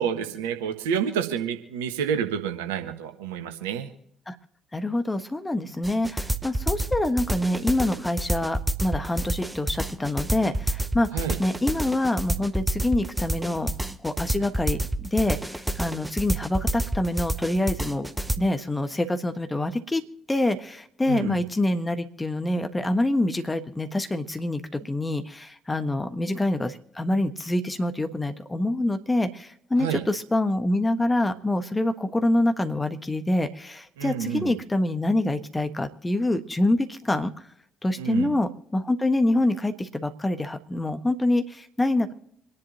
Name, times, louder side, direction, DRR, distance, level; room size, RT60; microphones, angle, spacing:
voice 1, 0.0-3.9 11.1-11.4 21.1-21.4 29.8-30.0 34.0-34.6 38.0-38.3, right 8 dB, 70° right, 6 dB, 1.4 m, -29 dB
voice 2, 4.7-11.1 11.4-13.7 14.0-14.8 15.1-18.1 18.4-20.0 20.3-37.3 37.8-42.1, left 1 dB, 15° left, 8 dB, 1.4 m, -26 dB
sound 1, 5.8-18.4, right 1 dB, 10° right, 0.9 m, -28 dB
27.0 x 10.5 x 2.9 m, 0.74 s
figure-of-eight pair, 50°, 0 cm